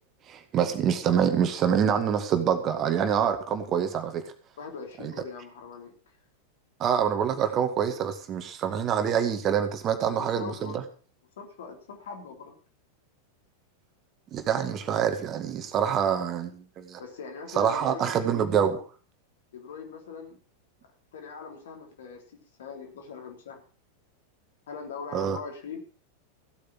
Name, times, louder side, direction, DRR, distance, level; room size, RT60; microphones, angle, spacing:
voice 1, 0.3-4.2 5.0-5.1 6.8-10.8 14.3-17.0 17.5-18.8 25.1-25.4, right 8 dB, 30° right, 2.0 m, -26 dB
voice 2, 4.6-5.9 10.1-10.8 11.4-12.5 17.0-18.1 19.5-20.4 21.1-22.2 22.6-23.6 24.7-25.8, left 5 dB, 60° left, 3.6 m, -41 dB
15.5 x 8.6 x 6.2 m
figure-of-eight pair, 90°, 0 cm